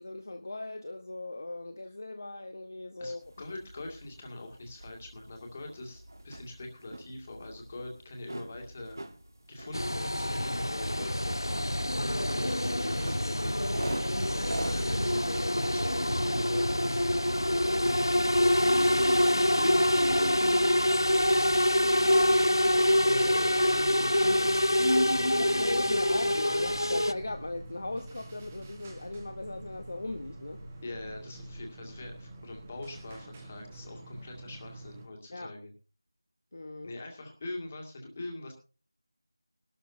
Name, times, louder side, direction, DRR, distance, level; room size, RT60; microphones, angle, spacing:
voice 1, 0.0-3.2 25.4-30.6 35.3-35.5 36.5-37.0, left 2 dB, 45° left, 1.0 m, -38 dB
voice 2, 3.0-9.0 9.5-11.7 12.1-17.0 17.6-20.4 21.3-22.3 22.7-26.8 30.8-35.7 36.8-38.5, left 2 dB, 20° left, 2.1 m, -43 dB
sound 1, 3.2-19.7, right 1 dB, 55° right, 1.5 m, -45 dB
sound 2, 9.7-27.1, left 1 dB, 85° left, 0.6 m, -26 dB
sound 3, 19.3-35.0, right 1 dB, 15° right, 1.2 m, -47 dB
20.5 x 12.5 x 2.7 m
figure-of-eight pair, 170°, 2 cm